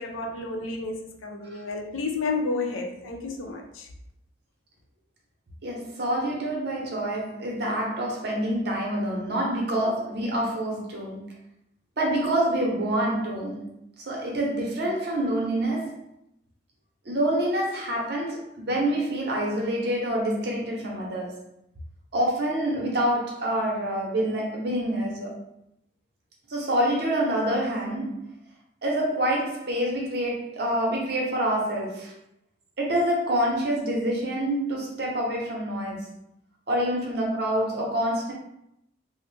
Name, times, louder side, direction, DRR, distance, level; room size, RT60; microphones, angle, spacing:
voice 1, 0.0-3.9, left 3 dB, 80° left, 0.5 m, -31 dB
voice 2, 5.6-11.3 12.0-13.7 14.1-16.0 17.1-21.3 22.1-25.4 26.5-28.3 28.8-32.1 32.8-36.1 36.7-38.3, right 1 dB, 55° right, 0.8 m, -27 dB
3.0 x 2.1 x 3.1 m
head